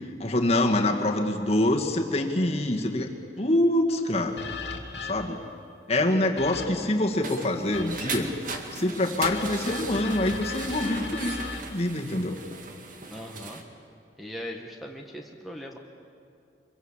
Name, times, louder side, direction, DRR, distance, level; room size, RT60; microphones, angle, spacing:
voice 1, 0.2-3.1 3.4-4.4 5.1-5.4 5.9-8.3 8.7-11.4 11.7-12.4, left 1 dB, 35° left, 2 dB, 2.1 m, -25 dB
sound 1, 4.4-5.5 6.4-7.0 7.7-8.5 9.2-11.6, left 4 dB, 75° left, 2.4 m, -38 dB
sound 2, 6.8-13.6, right 3 dB, 50° right, 2.1 m, -38 dB
voice 2, 13.1-13.6 14.2-15.8, equal, ahead, 2 dB, 1.6 m, -39 dB
25.0 x 23.5 x 7.4 m, 2.6 s
head